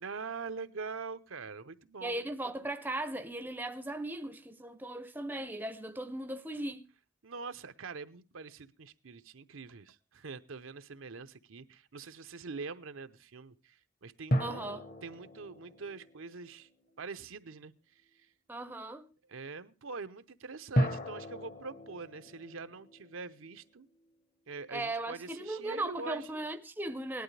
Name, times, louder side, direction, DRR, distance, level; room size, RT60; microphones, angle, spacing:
voice 1, 0.0-2.3 7.2-16.7 17.0-18.3 19.3-23.9 24.5-26.3, right 4 dB, 85° right, 0.8 m, -44 dB
voice 2, 2.0-6.9 14.4-14.8 18.5-19.1 24.7-27.2, right 1 dB, 10° right, 0.5 m, -37 dB
sound 1, 14.3-17.1 20.8-24.1, equal, 45° left, 1.0 m, -35 dB
18.0 x 11.5 x 3.3 m
head